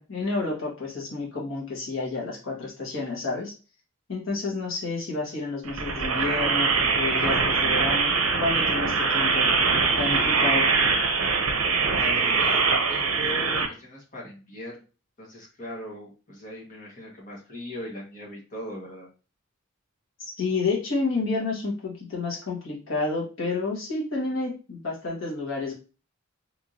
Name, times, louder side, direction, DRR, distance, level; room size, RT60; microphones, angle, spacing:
voice 1, 0.0-3.5 4.1-8.1 8.4-9.5 10.0-10.7 20.4-25.7, left 3 dB, 65° left, -4 dB, 1.4 m, -30 dB
sound 1, 5.7-13.7, right 4 dB, 75° right, 0.7 m, -23 dB
voice 2, 11.8-12.6 12.9-14.8 15.2-19.1, left 1 dB, 35° left, -2 dB, 1.3 m, -38 dB
3.5 x 3.1 x 2.6 m, 0.33 s
head